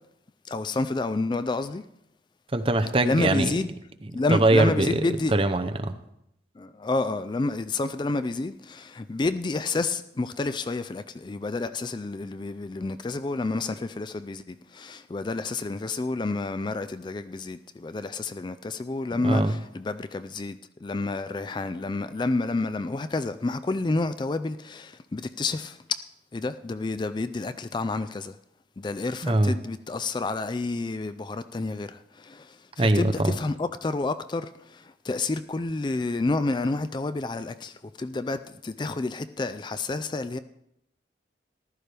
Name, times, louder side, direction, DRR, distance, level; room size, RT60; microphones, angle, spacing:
voice 1, 0.4-1.8 3.0-3.7 4.1-5.3 6.6-26.0 26.3-28.4 28.8-40.4, left 3 dB, 25° left, 0.4 m, -29 dB
voice 2, 2.5-3.5 4.3-5.0 5.3-6.0 19.1-19.6 29.2-29.5 32.8-33.3, right 2 dB, 30° right, 0.7 m, -22 dB
14.5 x 12.5 x 3.4 m
head